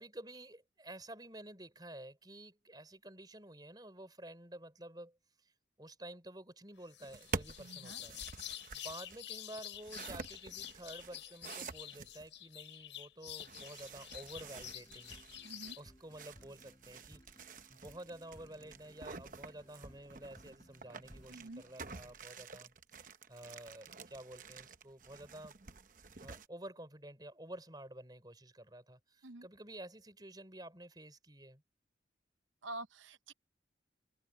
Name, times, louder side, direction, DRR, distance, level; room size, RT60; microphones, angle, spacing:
voice 1, 0.0-5.5 5.8-8.2 8.7-15.1 15.8-17.4 17.7-25.6 26.2-31.6, right 1 dB, 20° right, 4.0 m, -51 dB
sound 1, 6.9-15.8, left 13 dB, 80° left, 6.1 m, -48 dB
sound 2, 7.0-12.3 13.3-26.5, right 4 dB, 45° right, 0.9 m, -49 dB
voice 2, 7.6-8.0 15.4-15.8 21.3-21.6 29.2-29.5 32.6-33.3, right 2 dB, 90° right, 0.8 m, -47 dB
sound 3, 13.9-22.1, equal, 20° left, 5.2 m, -62 dB
head